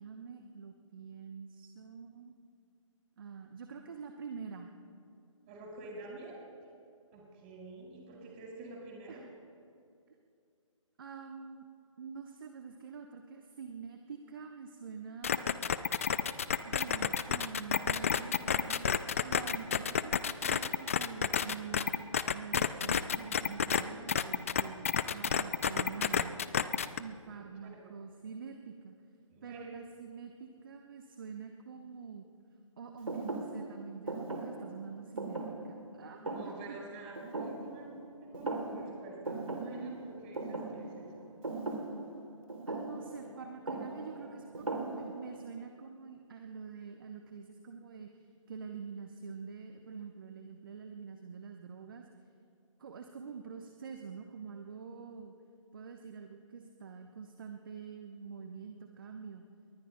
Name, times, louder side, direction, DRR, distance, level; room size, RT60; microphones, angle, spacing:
voice 1, 0.0-2.4 3.2-4.7 9.1-9.3 11.0-11.7 12.0-15.5 16.6-18.9 19.2-22.1 22.3-26.4 27.0-28.9 29.4-32.3 32.8-36.4 36.7-36.8 42.7-52.0 52.8-55.3 55.7-59.4, right 6 dB, 40° right, 5 dB, 1.0 m, -46 dB
voice 2, 5.5-6.4 7.1-9.2 27.3-27.9 29.3-29.8 36.2-41.3, right 2 dB, 20° right, -2 dB, 4.8 m, -48 dB
sound 1, 15.2-23.8 24.1-27.0, left 7 dB, 25° left, 0.4 m, -30 dB
Thump thud, 33.1-38.1 38.3-39.0 39.3-45.4, right 2 dB, 70° right, 2.9 m, -39 dB
30.0 x 21.5 x 2.2 m, 2.5 s
figure-of-eight pair, 140°, 17 cm